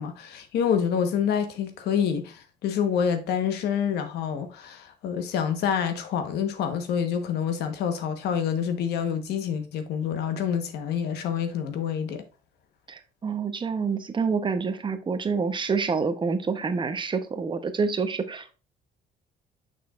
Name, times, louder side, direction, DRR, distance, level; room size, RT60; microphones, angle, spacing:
voice 1, 0.0-12.2, left 8 dB, 75° left, 1.2 m, -27 dB
voice 2, 12.9-18.5, right 5 dB, 30° right, 0.9 m, -27 dB
6.5 x 6.2 x 2.5 m
cardioid pair, 110°, 17 cm